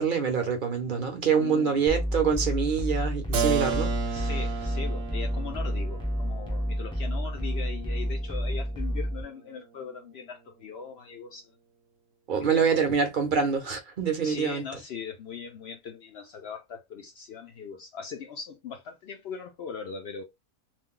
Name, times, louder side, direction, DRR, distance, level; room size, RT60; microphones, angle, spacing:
voice 1, 0.0-4.3 12.3-14.6, right 6 dB, 45° right, 0.7 m, -26 dB
voice 2, 1.4-1.8 4.1-11.5 12.4-12.8 14.2-20.2, left 6 dB, 65° left, 0.6 m, -40 dB
sound 1, 1.9-9.2, equal, 5° left, 0.6 m, -30 dB
Keyboard (musical), 3.3-8.9, right 6 dB, 70° right, 1.0 m, -34 dB
2.5 x 2.1 x 3.6 m
omnidirectional pair, 1.5 m